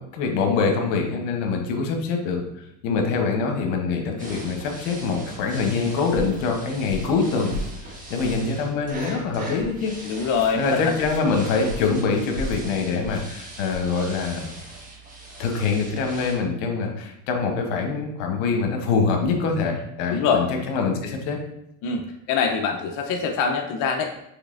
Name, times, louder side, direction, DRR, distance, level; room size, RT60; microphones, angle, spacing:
voice 1, 0.0-2.4 2.8-7.6 7.9-9.9 10.6-14.4 15.4-21.4, left 4 dB, 90° left, 3 dB, 1.0 m, -24 dB
sound 1, 4.2-16.4, right 1 dB, 20° right, 1.4 m, -40 dB
sound 2, 6.1-6.4 6.8-7.2 7.5-7.8 8.1-8.5 8.8-9.1 9.6-9.8 10.3-10.5 11.0-11.2 11.6-11.9 12.3-12.6 13.0-13.2 13.7-13.9, equal, 60° right, 0.9 m, -35 dB
voice 2, 10.0-10.9 20.1-20.5 21.8-22.0 22.3-24.1, left 6 dB, 55° left, 3 dB, 0.6 m, -23 dB
6.3 x 3.2 x 2.5 m, 0.80 s
cardioid pair, 130°, 37 cm